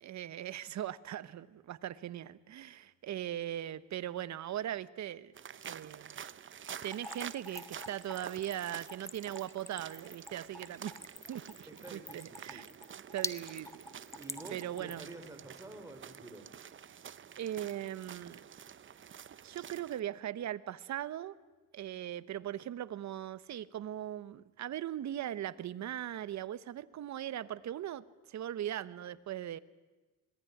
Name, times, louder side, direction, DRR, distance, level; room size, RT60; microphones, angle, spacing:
voice 1, 0.0-5.3 5.6-6.3 6.8-12.6 13.1-13.8 14.5-15.1 17.4-18.4 19.4-21.4 21.7-29.6, right 11 dB, 65° right, 16 dB, 1.1 m, -39 dB
sound 1, 5.3-20.0, right 8 dB, 40° right, 0.8 m, -49 dB
Splash splatter / Trickle dribble, 6.8-15.1, left 2 dB, 10° left, 1.3 m, -45 dB
voice 2, 11.7-12.6 14.2-16.5, right 2 dB, 10° right, 5 dB, 4.3 m, -49 dB
25.5 x 19.5 x 10.0 m, 1.2 s
cardioid pair, 90°, 30 cm